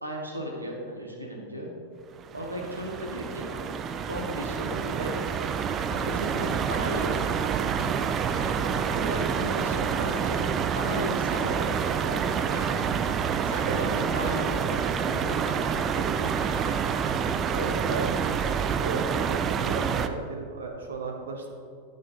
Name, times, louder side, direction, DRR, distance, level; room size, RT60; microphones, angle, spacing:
voice 1, 0.0-1.7 2.3-3.7 4.1-5.3 5.9-7.2 7.4-7.9 8.4-8.6 8.9-10.4 10.7-11.7 12.1-12.8 13.5-16.7 17.5-17.9, equal, 85° right, 0 dB, 1.1 m, -35 dB
sound 1, 2.1-20.1, right 7 dB, 30° right, 0.3 m, -28 dB
voice 2, 17.4-18.1 18.8-21.5, right 4 dB, 65° right, 3 dB, 0.8 m, -35 dB
8.4 x 6.4 x 3.0 m, 2.3 s
figure-of-eight pair, 90°, 0 cm